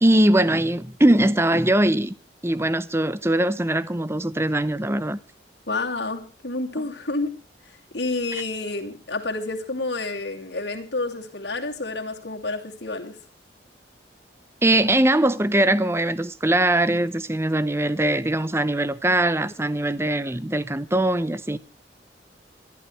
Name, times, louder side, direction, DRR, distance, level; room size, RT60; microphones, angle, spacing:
voice 1, 0.0-2.1 2.4-5.2 14.6-21.6, right 1 dB, 15° right, 0.8 m, -21 dB
voice 2, 5.7-7.3 7.9-13.2, left 2 dB, 70° left, 2.9 m, -29 dB
26.5 x 12.0 x 3.3 m
head